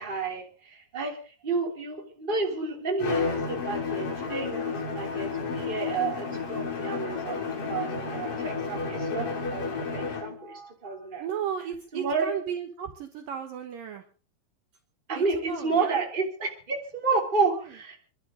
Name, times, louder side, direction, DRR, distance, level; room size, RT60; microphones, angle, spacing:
voice 1, 0.0-7.4 7.7-11.2 11.9-12.4 15.1-18.0, right 4 dB, 15° right, 2 dB, 2.0 m, -30 dB
Bowed string instrument, 3.0-10.4, left 4 dB, 35° left, 3.0 m, -31 dB
voice 2, 11.2-14.1 15.1-16.0 17.4-17.7, right 8 dB, 85° right, 5 dB, 1.9 m, -35 dB
28.0 x 11.5 x 3.8 m, 0.37 s
omnidirectional pair, 5.9 m